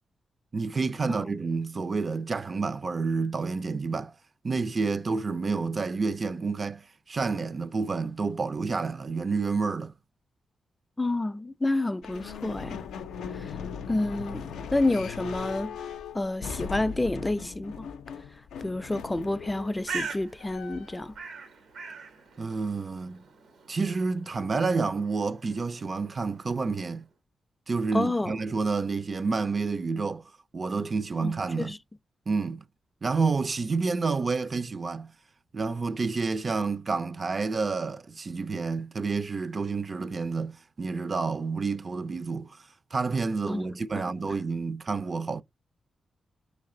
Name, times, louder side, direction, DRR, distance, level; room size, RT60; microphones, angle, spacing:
voice 1, 0.5-4.1 4.4-9.9 22.4-23.2 23.7-27.0 27.7-30.2 30.5-31.7 32.3-32.6 33.0-35.1 35.5-42.6 42.9-45.4, right 4 dB, 45° right, 0.4 m, -29 dB
voice 2, 11.0-12.8 13.3-13.5 13.9-14.5 14.7-15.8 16.1-17.9 18.6-21.1 27.9-28.4 31.2-31.8 43.5-43.7, left 2 dB, 20° left, 0.3 m, -29 dB
sound 1, 12.0-21.1, left 7 dB, 85° left, 0.4 m, -39 dB
Bird, 19.4-27.0, right 5 dB, 85° right, 1.0 m, -43 dB
3.3 x 2.9 x 3.7 m
supercardioid pair, 50°, 0 cm